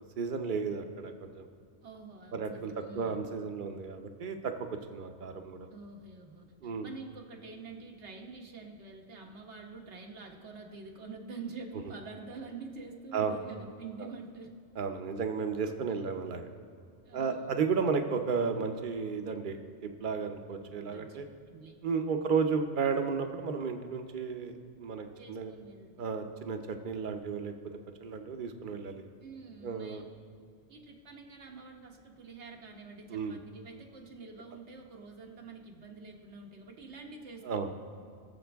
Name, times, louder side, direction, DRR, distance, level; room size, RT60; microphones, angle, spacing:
voice 1, 0.2-1.5 2.3-4.5 4.9-5.7 6.6-6.9 13.1-13.4 14.8-16.5 17.1-21.3 21.8-24.5 24.8-25.5 26.0-27.5 28.0-29.1 29.6-30.0 33.1-33.4 37.4-37.7, right 5 dB, 50° right, 6 dB, 0.9 m, -33 dB
voice 2, 1.8-3.3 5.7-14.5 17.0-17.6 20.9-21.2 21.5-21.8 25.2-25.9 29.2-30.0 30.7-37.7, right 4 dB, 80° right, 2 dB, 1.5 m, -47 dB
21.0 x 7.1 x 3.5 m, 2.2 s
omnidirectional pair, 1.1 m